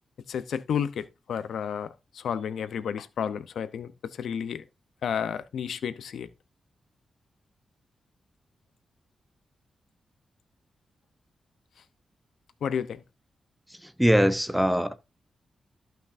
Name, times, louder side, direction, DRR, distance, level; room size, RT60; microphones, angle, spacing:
voice 1, 0.3-1.9 2.1-4.6 5.0-6.3 12.6-13.0, left 7 dB, 90° left, 0.7 m, -31 dB
voice 2, 13.7-14.9, equal, 5° right, 0.8 m, -23 dB
14.0 x 5.8 x 2.6 m
wide cardioid pair, 125°, 0 cm